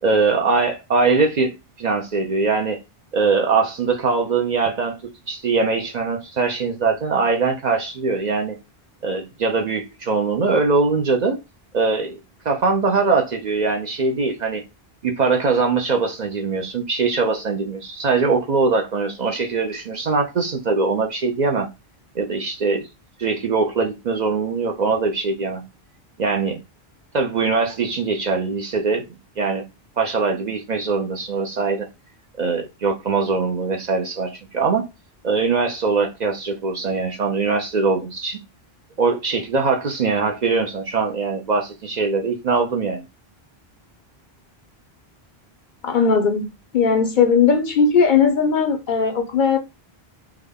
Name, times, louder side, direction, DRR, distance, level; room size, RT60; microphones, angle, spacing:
voice 1, 0.0-2.8 3.1-8.6 9.0-11.4 11.7-12.2 12.5-14.6 15.0-21.7 22.1-22.9 23.2-25.6 26.2-26.6 27.1-29.0 29.4-29.6 30.0-31.9 32.4-34.8 35.2-38.4 39.0-43.0, right 4 dB, 55° right, 0.6 m, -22 dB
voice 2, 45.8-46.5 46.7-49.6, left 5 dB, 60° left, 0.6 m, -18 dB
3.5 x 2.1 x 3.4 m
omnidirectional pair, 1.1 m